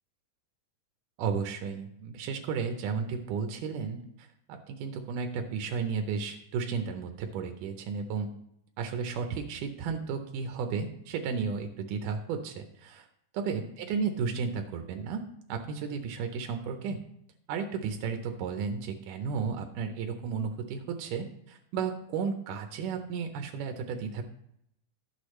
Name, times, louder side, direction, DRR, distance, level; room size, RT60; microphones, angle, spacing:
voice 1, 1.2-8.3 8.8-13.1 13.3-15.2 15.5-17.0 17.5-24.2, right 6 dB, 90° right, 5 dB, 2.5 m, -33 dB
12.0 x 8.3 x 3.2 m, 0.74 s
omnidirectional pair, 3.6 m